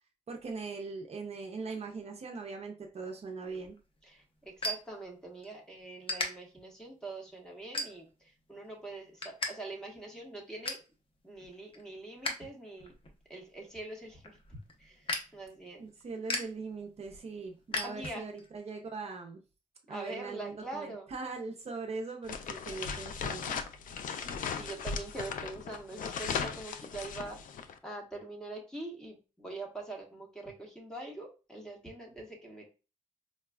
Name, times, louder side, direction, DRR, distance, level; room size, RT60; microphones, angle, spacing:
voice 1, 0.3-3.8 15.8-19.4 19.9-23.6, right 4 dB, 50° right, 2 dB, 0.6 m, -40 dB
sound 1, 3.5-5.5 6.0-6.3 6.8-7.1 7.7-8.3 8.7-9.5 9.8-9.9 10.3-10.9 11.4-12.5 12.8-18.5, left 2 dB, 40° left, 0.8 m, -38 dB
voice 2, 4.0-10.8 11.2-12.9 13.3-14.4 14.8-15.9 17.8-18.2 19.9-21.1 24.1-27.4 27.8-32.6, right 2 dB, 5° left, -1 dB, 1.2 m, -44 dB
sound 2, 22.2-27.7, left 6 dB, 80° left, 0.4 m, -37 dB
4.7 x 2.2 x 2.3 m, 0.32 s
cardioid pair, 100°, 14 cm